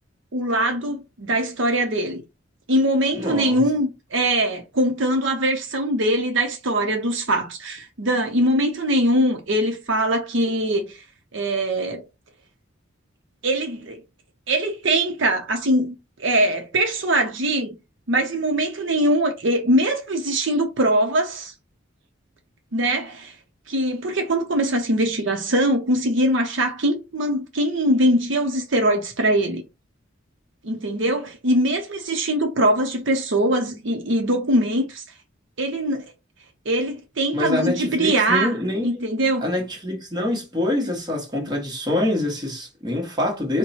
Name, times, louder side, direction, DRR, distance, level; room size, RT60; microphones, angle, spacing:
voice 1, 0.3-2.2 2.7-11.0 11.3-12.0 13.4-14.0 14.5-17.8 18.1-21.5 22.7-23.3 23.7-29.6 30.6-35.0 35.6-36.1 36.7-39.4, right 1 dB, 65° right, 0.8 m, -22 dB
voice 2, 3.2-3.6 37.3-38.9 39.4-43.6, left 1 dB, 20° right, 1.2 m, -25 dB
4.5 x 2.2 x 4.1 m
head